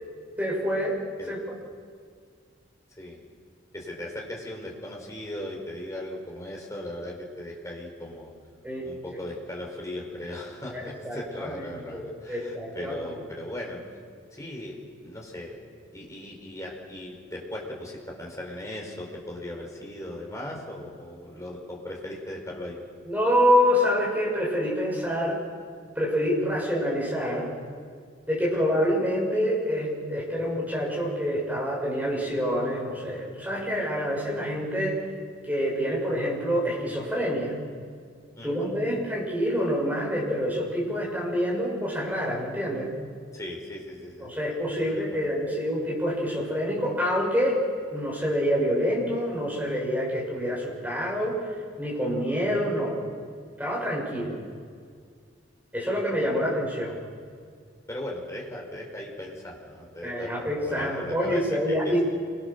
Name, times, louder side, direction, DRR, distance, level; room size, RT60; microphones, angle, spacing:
voice 1, 0.4-1.0 1.3-1.4 8.6-8.8 10.7-13.1 23.0-25.4 25.9-27.5 28.3-35.0 35.5-37.6 38.4-42.9 44.2-47.6 47.9-51.3 51.8-52.9 53.6-54.4 55.7-57.0 60.0-62.0, equal, 10° right, -4 dB, 6.7 m, -27 dB
voice 2, 3.7-8.3 8.8-13.8 14.3-15.6 15.9-22.8 28.5-28.7 35.9-36.0 38.4-38.7 43.3-44.4 44.8-45.3 56.1-56.2 57.9-62.0, left 1 dB, 15° left, -2 dB, 4.8 m, -38 dB
27.5 x 23.0 x 6.9 m, 2.1 s
head